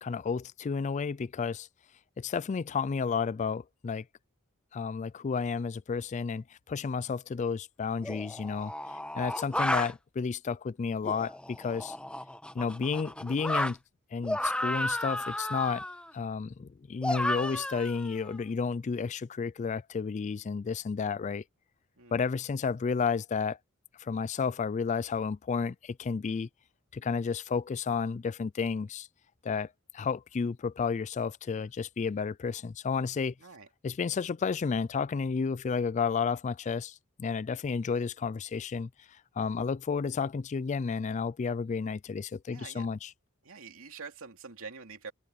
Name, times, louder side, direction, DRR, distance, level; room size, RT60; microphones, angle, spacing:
voice 1, 0.0-1.7 2.2-4.0 4.7-8.7 9.1-12.0 12.5-13.8 14.1-15.9 16.1-21.4 22.1-23.6 24.0-26.5 26.9-29.1 29.4-33.3 33.8-43.1, left 5 dB, 35° left, 0.3 m, -32 dB
sound 1, 7.1-7.2 8.0-9.9 11.0-13.7 14.2-16.1 17.0-18.3, left 1 dB, 5° left, 1.2 m, -33 dB
voice 2, 42.5-42.9 43.4-45.1, right 5 dB, 70° right, 3.0 m, -45 dB
open air
head